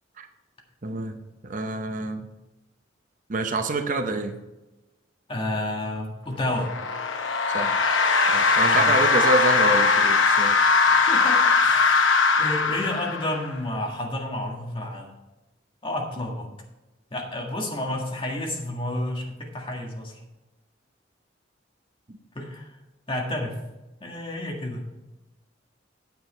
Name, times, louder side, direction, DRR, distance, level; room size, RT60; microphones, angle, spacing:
voice 1, 0.8-2.3 3.3-4.4 7.5-7.8 8.3-10.7 22.1-22.2, right 2 dB, 45° right, 7 dB, 0.7 m, -27 dB
voice 2, 5.3-6.7 8.6-9.0 10.2-15.1 15.8-16.5 17.1-20.2 22.3-22.8 23.1-23.6 24.0-24.9, left 1 dB, 30° left, 0 dB, 1.8 m, -31 dB
sound 1, 6.5-13.5, left 4 dB, 85° left, 0.9 m, -20 dB
9.2 x 7.6 x 4.4 m, 1.0 s
head